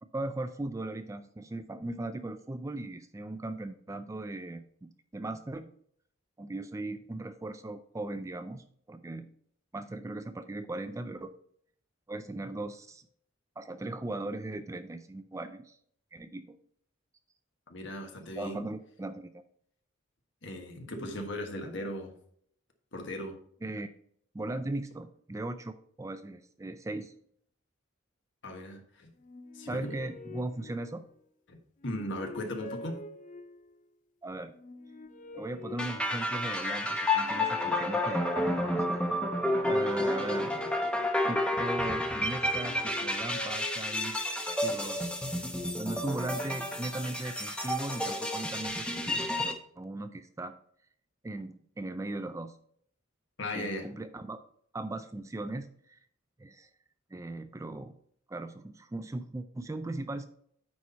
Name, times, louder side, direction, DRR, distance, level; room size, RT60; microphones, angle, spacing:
voice 1, 0.0-5.7 6.4-9.3 9.7-11.3 12.1-13.1 13.6-15.8 16.1-16.6 18.4-19.4 23.6-23.9 24.3-25.7 26.0-27.1 29.7-31.1 34.2-34.5 35.3-38.9 39.7-40.8 41.3-44.2 44.6-45.0 45.3-50.5 51.2-52.6 53.5-54.4 54.7-56.0 56.4-56.7 57.1-57.9 58.3-60.3, right 2 dB, 15° right, 10 dB, 0.3 m, -38 dB
voice 2, 17.7-18.6 20.4-22.1 22.9-23.4 28.4-29.1 29.5-30.0 31.5-31.6 31.8-33.0 53.4-53.9, left 1 dB, 60° left, 4 dB, 1.3 m, -37 dB
sound 1, 29.2-31.3 31.8-33.8 34.5-36.7 37.1-39.2 39.9-42.0 42.5-44.5, left 2 dB, 40° left, 0.5 m, -47 dB
sound 2, 35.8-49.5, left 1 dB, 5° left, 0.8 m, -30 dB
9.3 x 4.2 x 4.2 m, 0.64 s
head